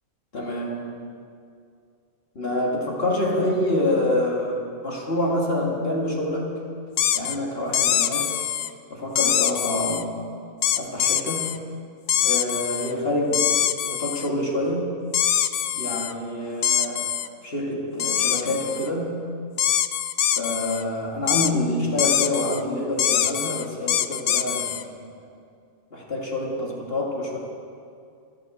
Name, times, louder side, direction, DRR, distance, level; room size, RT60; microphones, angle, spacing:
voice 1, 0.3-1.1 2.4-6.5 7.1-8.3 8.9-10.2 10.8-11.5 12.2-14.9 15.8-17.1 17.4-19.2 20.4-24.8 25.9-27.4, left 1 dB, 45° left, -2 dB, 2.2 m, -27 dB
sound 1, 7.0-7.4 7.7-8.7 9.2-10.0 10.6-11.6 12.1-12.9 13.3-14.3 15.1-16.1 16.6-17.3 18.0-18.9 19.6-20.8 21.3-21.5 22.0-22.6 23.0-24.8, left 10 dB, 70° left, 0.5 m, -23 dB
13.0 x 11.5 x 7.6 m, 2.4 s
omnidirectional pair, 1.5 m